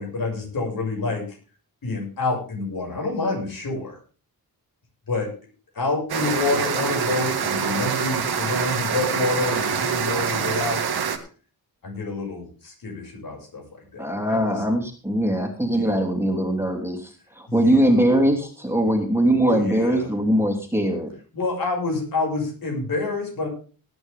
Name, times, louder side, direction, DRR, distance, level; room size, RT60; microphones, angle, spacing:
voice 1, 0.0-1.4 1.8-4.0 5.1-5.3 5.7-10.8 11.8-14.6 15.7-16.0 17.5-17.9 19.4-20.1 21.3-23.5, left 3 dB, 65° left, 1 dB, 6.5 m, -28 dB
sound 1, 6.1-11.2, right 7 dB, 80° right, 2.0 m, -25 dB
voice 2, 14.0-21.1, right 1 dB, 5° right, 1 dB, 2.9 m, -21 dB
19.0 x 9.6 x 3.6 m, 0.38 s
wide cardioid pair, 120°, 37 cm